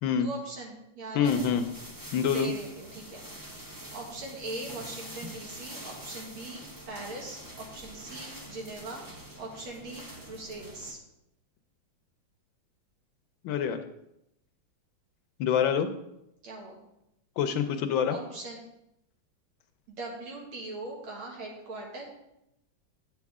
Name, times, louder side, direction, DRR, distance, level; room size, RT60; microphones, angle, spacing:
voice 1, 0.1-1.6 2.3-3.2 3.9-6.6 6.9-9.0 9.4-11.0 16.4-16.8 18.1-18.6 19.9-22.2, right 2 dB, 70° right, -1 dB, 2.6 m, -40 dB
voice 2, 1.1-1.6 2.1-2.5 13.4-13.8 15.4-15.9 17.4-18.2, left 7 dB, 75° left, 8 dB, 1.3 m, -26 dB
sound 1, 1.2-10.9, equal, 25° right, 0.4 m, -45 dB
9.7 x 7.2 x 3.6 m, 0.84 s
omnidirectional pair, 2.3 m